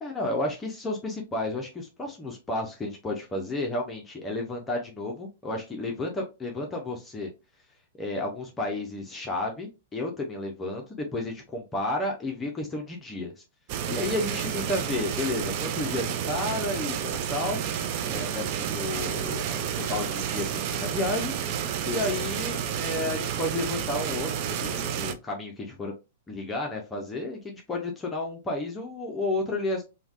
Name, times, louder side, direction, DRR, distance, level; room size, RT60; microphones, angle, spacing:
voice 1, 0.0-7.3 8.0-13.4 13.9-17.6 18.1-21.3 21.9-24.3 24.6-25.9 26.3-29.8, left 2 dB, 15° left, 0 dB, 0.5 m, -32 dB
sound 1, 13.7-25.1, right 9 dB, 45° right, 0.4 m, -30 dB
3.2 x 2.1 x 2.4 m, 0.28 s
figure-of-eight pair, 105°, 0 cm